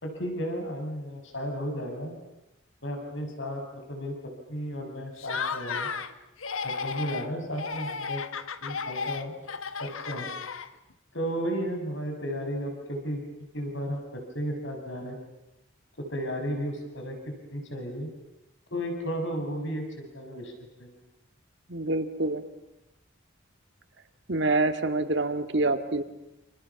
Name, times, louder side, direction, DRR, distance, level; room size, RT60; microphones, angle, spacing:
voice 1, 0.0-2.1 2.8-5.9 6.6-8.2 8.6-9.3 9.8-10.3 11.1-13.2 13.5-15.2 16.0-17.2 17.5-18.1 18.7-20.5 20.8-20.9, equal, 65° left, 3 dB, 6.7 m, -33 dB
Laughter, 5.2-6.1 6.4-7.3 7.6-10.9, left 5 dB, 85° left, 1.4 m, -34 dB
voice 2, 21.7-22.4 24.3-26.0, right 2 dB, 60° right, 8 dB, 2.1 m, -26 dB
29.0 x 28.0 x 7.1 m, 0.94 s
head